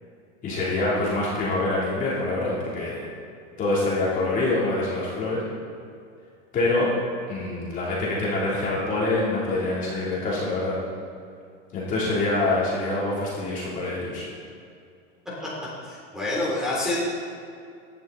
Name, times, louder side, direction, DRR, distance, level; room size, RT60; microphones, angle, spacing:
voice 1, 0.4-3.1 3.6-5.4 6.5-6.9 7.3-10.8 11.7-14.3, left 2 dB, 20° left, -7 dB, 3.3 m, -25 dB
voice 2, 15.8-17.0, left 2 dB, ahead, -7 dB, 3.4 m, -27 dB
17.0 x 10.5 x 4.1 m, 2.4 s
supercardioid pair, 165°, 37 cm